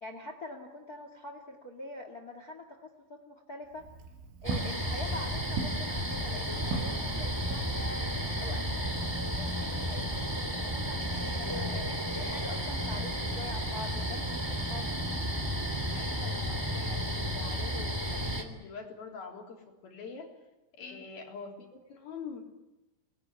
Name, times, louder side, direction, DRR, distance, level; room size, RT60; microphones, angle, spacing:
voice 1, 0.0-3.8 4.4-8.0 8.4-14.9 20.8-21.0, left 1 dB, 85° left, 6 dB, 0.8 m, -44 dB
Walk footsteps, 3.6-8.2, right 4 dB, 80° right, 6.5 m, -40 dB
sound 1, 4.4-18.4, equal, 10° right, 1.4 m, -33 dB
voice 2, 15.9-20.3 20.7-22.4, left 5 dB, 50° left, 0 dB, 5.1 m, -45 dB
27.5 x 20.0 x 9.6 m, 1.0 s
omnidirectional pair, 5.8 m